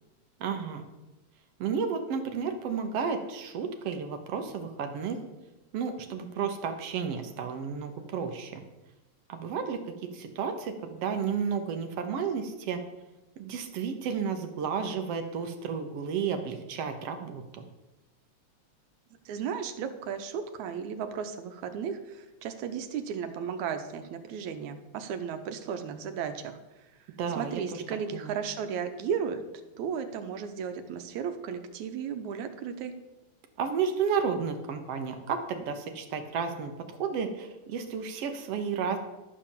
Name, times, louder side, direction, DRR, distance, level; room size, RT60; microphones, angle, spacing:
voice 1, 0.4-0.8 1.6-5.2 5.7-8.6 9.3-12.8 13.4-17.6 27.2-27.8 28.1-28.4 33.6-36.7 37.0-39.0, right 6 dB, 65° right, 6 dB, 1.7 m, -32 dB
voice 2, 19.3-26.6 27.3-29.4 29.8-32.9, right 7 dB, 85° right, 8 dB, 2.2 m, -34 dB
12.0 x 4.9 x 7.2 m, 1.0 s
omnidirectional pair, 3.3 m